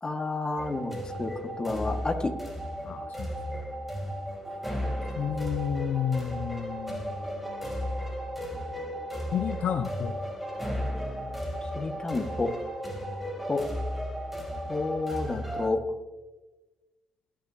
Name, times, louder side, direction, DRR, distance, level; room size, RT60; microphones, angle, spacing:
voice 1, 0.0-2.3 11.7-12.5 13.5-13.6 14.7-15.8, left 3 dB, 25° left, 5 dB, 1.8 m, -30 dB
sound 1, 0.6-15.7, equal, 5° right, 3.2 m, -34 dB
voice 2, 2.8-3.6 5.1-8.0 9.3-10.2, left 8 dB, 65° left, 8 dB, 0.8 m, -32 dB
20.5 x 10.0 x 2.9 m, 1.2 s
supercardioid pair, 70°, 3 cm